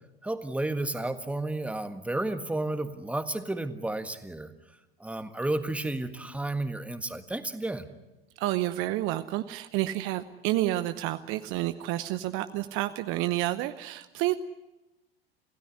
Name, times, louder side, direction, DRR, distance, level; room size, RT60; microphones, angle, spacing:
voice 1, 0.2-4.5 5.0-7.9, right 2 dB, 5° right, 10 dB, 1.7 m, -32 dB
voice 2, 8.4-14.4, right 15 dB, 45° right, 11 dB, 0.9 m, -29 dB
27.0 x 16.5 x 9.8 m, 1.0 s
figure-of-eight pair, 75°, 30 cm